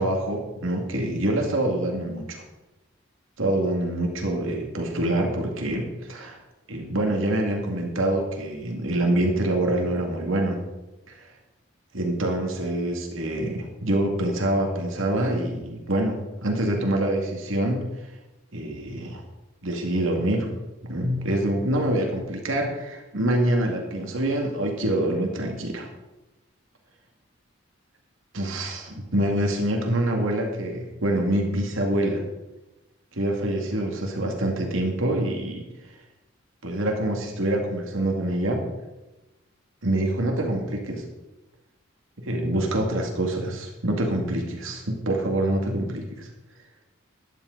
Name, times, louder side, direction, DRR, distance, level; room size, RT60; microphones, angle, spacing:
voice 1, 0.0-2.4 3.4-6.4 6.7-10.6 11.1-11.2 11.9-18.1 18.5-19.2 19.6-20.5 20.8-25.9 28.3-32.2 33.1-35.6 36.6-38.6 39.8-41.0 42.2-46.3, right 1 dB, 80° right, 1 dB, 2.2 m, -25 dB
13.0 x 11.0 x 4.0 m, 1.0 s
head